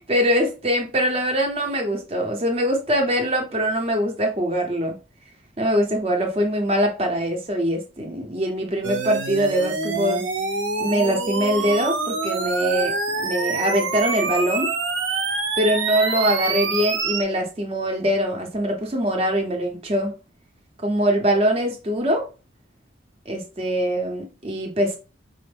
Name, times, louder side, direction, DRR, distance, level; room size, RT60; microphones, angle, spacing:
voice 1, 0.0-4.9 5.6-10.2 10.8-12.9 13.2-14.7 15.6-20.1 20.8-22.2 23.3-25.0, equal, 30° right, 0.6 m, -23 dB
sound 1, 8.8-17.2, right 4 dB, 70° right, 0.7 m, -26 dB
5.1 x 2.0 x 3.2 m
head